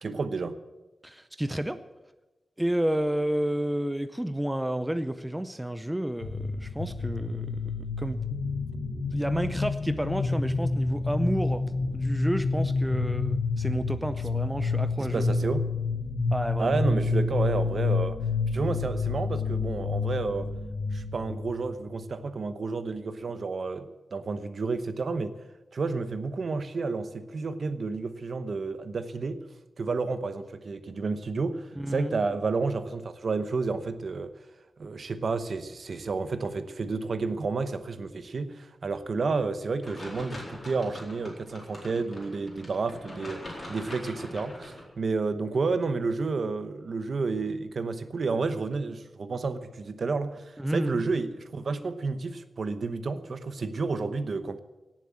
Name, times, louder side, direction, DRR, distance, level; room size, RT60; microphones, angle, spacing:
voice 1, 0.0-0.5 8.7-8.8 15.0-15.7 16.6-18.2 18.5-20.5 20.9-25.3 25.7-29.4 29.8-34.3 34.8-54.6, right 4 dB, 55° right, 11 dB, 0.9 m, -31 dB
voice 2, 1.0-1.8 2.6-8.2 9.1-15.3 16.3-16.8 31.8-32.2 50.6-51.0, right 1 dB, 5° right, 11 dB, 0.6 m, -31 dB
sound 1, 6.2-22.1, left 3 dB, 40° left, 1.0 m, -29 dB
sound 2, 39.8-44.8, left 1 dB, 25° left, 4.2 m, -42 dB
17.0 x 7.5 x 8.6 m, 1.1 s
wide cardioid pair, 160°, 0 cm